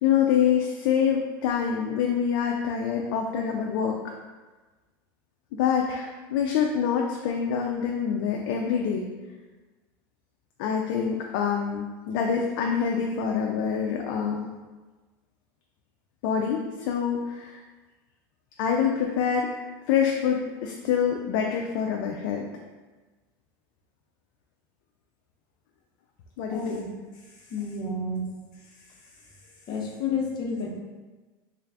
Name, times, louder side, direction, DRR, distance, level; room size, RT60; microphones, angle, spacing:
voice 1, 0.0-4.0 5.5-9.1 10.6-14.5 16.2-17.6 18.6-22.4 26.4-26.8, left 7 dB, 65° left, 1 dB, 0.4 m, -26 dB
voice 2, 26.5-26.9 27.5-28.3 29.7-30.7, left 3 dB, 40° left, 0 dB, 0.7 m, -30 dB
3.3 x 2.4 x 3.3 m, 1.3 s
supercardioid pair, 125°, 12 cm